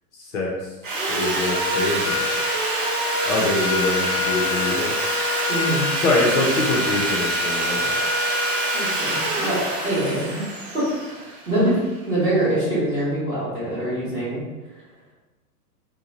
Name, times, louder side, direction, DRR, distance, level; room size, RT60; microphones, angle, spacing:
voice 1, 0.2-0.7 1.1-2.4 3.3-4.9 6.0-8.2, left 2 dB, 45° left, -3 dB, 0.7 m, -24 dB
Sawing, 0.8-11.9, equal, 35° right, 0.4 m, -24 dB
voice 2, 5.5-5.9 8.7-9.6 9.8-10.4 10.7-11.8 12.1-14.4, right 1 dB, 10° right, -12 dB, 1.0 m, -24 dB
2.9 x 2.2 x 3.9 m, 1.2 s
hypercardioid pair, 160°, 48 cm